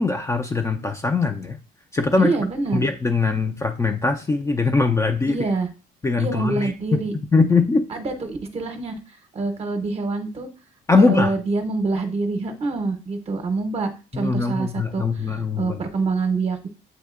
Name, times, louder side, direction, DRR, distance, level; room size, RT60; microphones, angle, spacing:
voice 1, 0.0-1.6 1.9-2.3 2.7-5.4 6.0-6.7 7.3-7.8 10.9-11.3 14.1-15.8, left 4 dB, 15° left, 4 dB, 0.4 m, -21 dB
voice 2, 2.2-2.8 5.3-5.7 6.2-7.1 7.9-10.5 10.9-16.7, right 3 dB, 35° right, 7 dB, 0.8 m, -26 dB
8.0 x 2.7 x 2.4 m, 0.33 s
cardioid pair, 110°, 17 cm